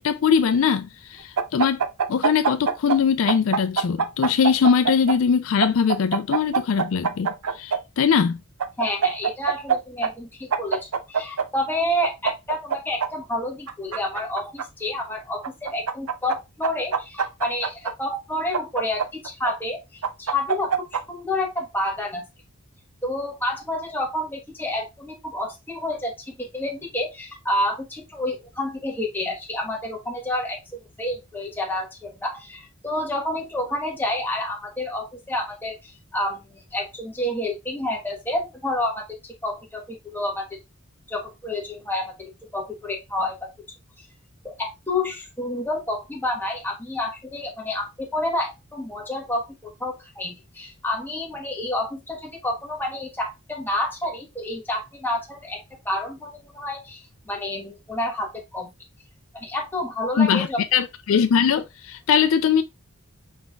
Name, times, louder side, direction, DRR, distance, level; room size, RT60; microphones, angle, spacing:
voice 1, 0.0-1.8 2.1-7.3 7.5-8.4 60.2-62.6, left 7 dB, 65° left, 0.4 m, -21 dB
sound 1, 1.4-3.0 3.3-5.2 5.6-7.8 8.6-9.8 10.0-10.1 10.5-11.5 12.0-13.1 13.7-14.6 15.4-16.4 16.6-17.9 18.5-19.5 20.0-21.0, right 6 dB, 90° right, 0.6 m, -23 dB
voice 2, 8.8-22.2 23.0-30.6 31.0-40.5 41.1-42.1 42.5-43.5 44.4-55.6 55.8-58.7 59.3-60.6, left 1 dB, 10° left, 1.1 m, -29 dB
5.1 x 3.9 x 2.3 m
head